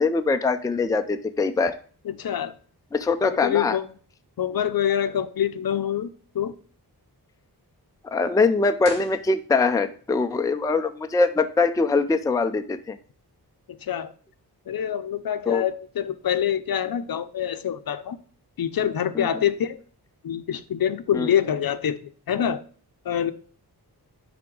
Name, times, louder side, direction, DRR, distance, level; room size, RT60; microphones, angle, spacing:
voice 1, 0.0-1.8 2.9-3.8 8.0-13.0 15.5-15.6 19.1-19.4 21.1-21.3, left 3 dB, 10° left, 7 dB, 0.4 m, -23 dB
voice 2, 2.1-2.5 3.2-3.8 4.4-6.1 6.3-6.5 13.8-14.1 14.7-18.2 18.6-19.8 20.2-22.0 22.3-22.6 23.0-23.3, left 9 dB, 60° left, 11 dB, 0.6 m, -25 dB
sound 1, 8.8-10.0, equal, 25° right, 3.9 m, -42 dB
10.5 x 3.6 x 3.8 m, 0.43 s
wide cardioid pair, 140°, 39 cm